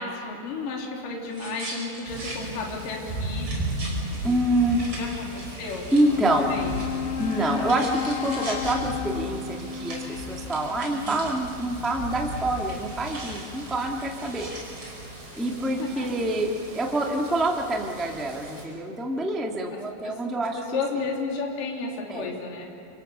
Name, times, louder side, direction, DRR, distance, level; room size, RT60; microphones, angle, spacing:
voice 1, 0.0-3.5 4.9-6.7 10.9-11.4 15.6-16.1 20.0-20.2 20.5-22.7, left 4 dB, 55° left, -1 dB, 4.7 m, -33 dB
sound 1, 1.3-2.4 2.8-2.9 3.2-11.5 11.8-11.9 12.2-14.9, right 1 dB, 30° right, 6.7 m, -41 dB
sound 2, 2.1-18.7, right 1 dB, 75° right, 8.5 m, -37 dB
voice 2, 4.2-4.8 5.9-6.5 7.2-14.5 15.3-20.8 22.1-22.3, right 1 dB, ahead, 0 dB, 0.5 m, -26 dB
Wind instrument woodwind instrument, 5.9-10.9, left 10 dB, 80° left, 3.0 m, -33 dB
29.0 x 26.0 x 6.9 m, 2.8 s
omnidirectional pair, 4.9 m